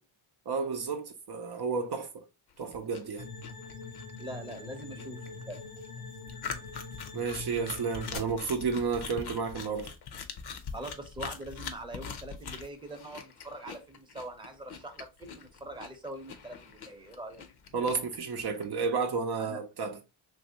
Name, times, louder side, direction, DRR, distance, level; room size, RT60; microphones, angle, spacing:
voice 1, 0.5-2.2 2.6-3.3 7.1-9.9 17.7-20.2, right 5 dB, 55° right, 0.6 m, -32 dB
sound 1, 2.5-18.7, left 6 dB, 55° left, 0.7 m, -43 dB
sound 2, 3.2-8.2, left 4 dB, 85° left, 1.3 m, -43 dB
voice 2, 4.2-5.7 10.7-17.4 19.4-19.6, right 1 dB, 10° right, 0.7 m, -43 dB
3.0 x 2.7 x 2.8 m
cardioid pair, 80°, 49 cm